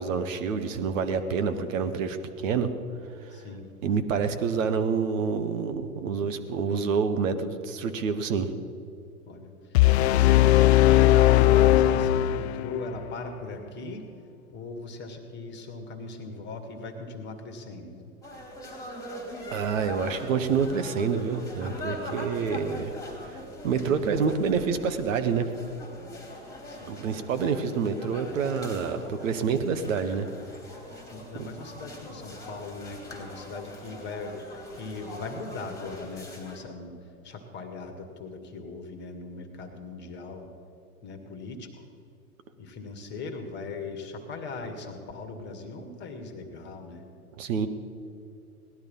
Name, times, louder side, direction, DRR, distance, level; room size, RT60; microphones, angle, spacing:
voice 1, 0.0-2.2 2.4-2.7 3.8-8.5 19.5-22.9 23.3-25.5 26.9-30.3 31.4-31.5 47.4-47.7, right 6 dB, 60° right, 9 dB, 1.4 m, -27 dB
voice 2, 3.3-3.7 9.3-9.5 10.0-14.1 14.5-18.0 21.9-22.2 26.6-27.0 31.1-37.0 37.2-40.5 41.0-41.7 42.6-47.1, left 3 dB, 25° left, 5 dB, 1.8 m, -39 dB
sound 1, 9.7-12.8, left 14 dB, 50° left, 0.5 m, -19 dB
sound 2, 18.2-36.6, left 1 dB, 10° left, 2.7 m, -42 dB
18.0 x 12.0 x 5.5 m, 2.7 s
hypercardioid pair, 120°, 45 cm